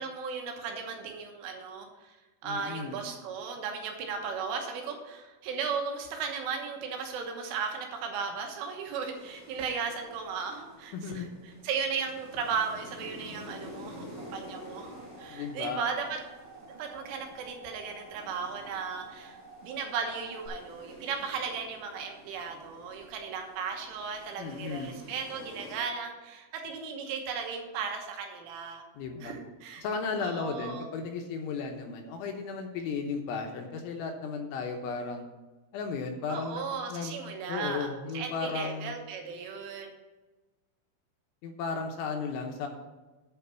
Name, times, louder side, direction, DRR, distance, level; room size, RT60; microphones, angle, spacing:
voice 1, 0.0-2.2 2.4-16.2 16.7-28.8 29.2-29.8 30.2-30.9 36.3-39.9, right 6 dB, 75° right, 3 dB, 3.5 m, -36 dB
voice 2, 2.4-3.0 10.9-11.3 15.3-15.8 24.4-24.9 29.0-29.4 29.8-35.3 35.7-37.2 37.5-38.9 41.4-42.7, left 5 dB, 75° left, 3 dB, 3.1 m, -35 dB
sound 1, 9.1-25.8, left 1 dB, 10° right, 1.0 m, -50 dB
sound 2, 14.0-20.5, right 3 dB, 50° right, 2.4 m, -51 dB
9.2 x 5.9 x 6.8 m, 1.2 s
omnidirectional pair, 5.9 m